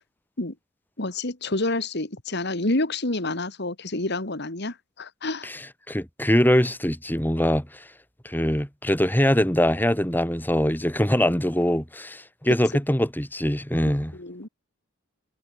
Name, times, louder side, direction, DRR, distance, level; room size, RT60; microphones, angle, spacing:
voice 1, 1.0-5.5 14.1-14.5, left 2 dB, 55° left, 2.4 m, -28 dB
voice 2, 5.4-7.8 8.2-14.1, equal, 10° left, 3.9 m, -23 dB
head